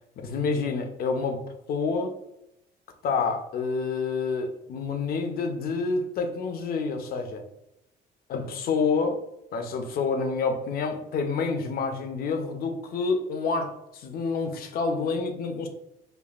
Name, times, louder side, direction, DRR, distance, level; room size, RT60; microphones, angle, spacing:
voice 1, 0.2-1.4 1.7-2.1 3.0-7.4 8.3-9.2 9.5-15.7, left 4 dB, 60° left, 6 dB, 0.7 m, -28 dB
5.3 x 2.3 x 2.4 m, 0.82 s
cardioid pair, 110°, 17 cm